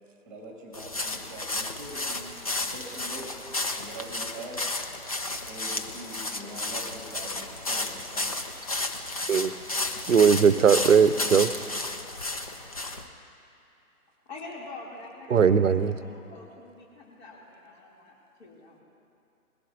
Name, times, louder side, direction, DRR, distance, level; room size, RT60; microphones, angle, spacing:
voice 1, 0.2-2.4 2.7-3.4 3.8-4.7 5.5-8.3, right 1 dB, ahead, -1 dB, 2.0 m, -43 dB
sound 1, 0.7-13.0, left 2 dB, 25° left, 0.5 m, -33 dB
voice 2, 10.1-11.5 15.3-16.0, right 6 dB, 55° right, 14 dB, 0.7 m, -19 dB
voice 3, 14.2-18.1 18.4-18.8, left 3 dB, 45° left, -3 dB, 3.0 m, -45 dB
21.5 x 15.0 x 2.8 m, 2.6 s
figure-of-eight pair, 135°, 45 cm